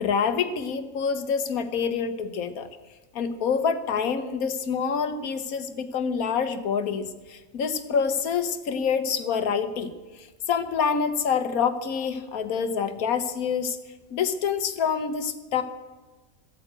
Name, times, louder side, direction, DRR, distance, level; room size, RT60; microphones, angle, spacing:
voice 1, 0.0-2.7 3.1-13.8 14.1-15.6, left 6 dB, 85° left, 10 dB, 1.5 m, -27 dB
14.5 x 9.0 x 8.1 m, 1.2 s
omnidirectional pair, 1.5 m